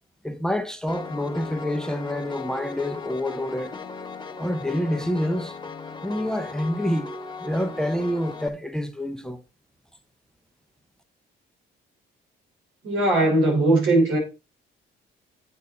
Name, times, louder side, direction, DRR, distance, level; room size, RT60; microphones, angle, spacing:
voice 1, 0.2-3.7 4.4-5.6 6.0-9.4, left 1 dB, 5° left, 1.2 m, -27 dB
Piano, 0.9-8.5, left 4 dB, 20° left, 1.7 m, -37 dB
voice 2, 12.8-14.2, right 2 dB, 80° right, 5.1 m, -19 dB
8.4 x 8.4 x 4.3 m
cardioid pair, 90°, 20 cm